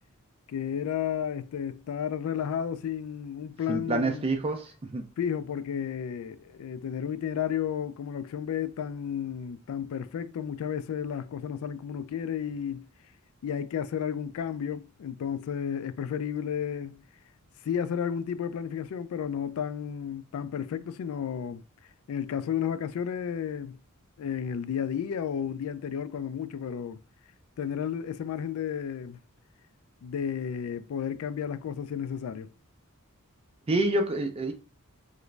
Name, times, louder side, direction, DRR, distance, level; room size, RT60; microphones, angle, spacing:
voice 1, 0.5-4.3 5.2-12.9 13.4-17.0 17.6-21.6 22.1-23.8 24.2-27.0 27.6-29.2 30.0-32.5, left 8 dB, 70° left, 0.3 m, -32 dB
voice 2, 3.7-5.0 33.7-34.5, right 2 dB, 25° right, 0.4 m, -27 dB
3.0 x 2.5 x 3.1 m
head